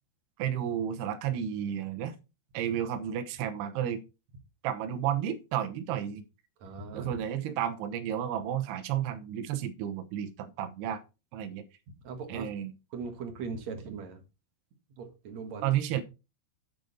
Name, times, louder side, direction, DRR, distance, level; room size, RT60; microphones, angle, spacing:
voice 1, 0.4-2.1 2.5-4.0 4.6-6.3 6.9-11.0 11.3-11.6 12.3-12.7 15.6-16.0, right 10 dB, 80° right, 8 dB, 2.9 m, -32 dB
voice 2, 6.6-7.1 12.0-12.5 12.9-14.2 15.0-15.7, right 4 dB, 55° right, 5 dB, 2.2 m, -39 dB
8.8 x 8.1 x 4.1 m, 0.28 s
omnidirectional pair, 4.8 m